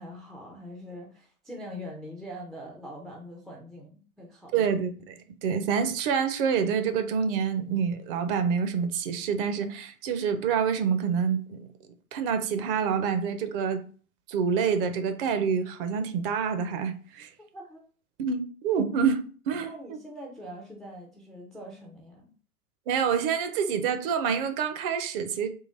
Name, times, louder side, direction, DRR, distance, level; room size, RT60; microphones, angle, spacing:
voice 1, 0.0-4.7 17.5-17.8 19.6-22.3, equal, ahead, 0.4 m, -43 dB
voice 2, 4.5-11.7 12.1-13.8 14.3-17.3 18.2-19.7 22.9-25.5, right 6 dB, 40° right, 0.7 m, -27 dB
3.8 x 2.9 x 4.0 m
figure-of-eight pair, 100°, 44 cm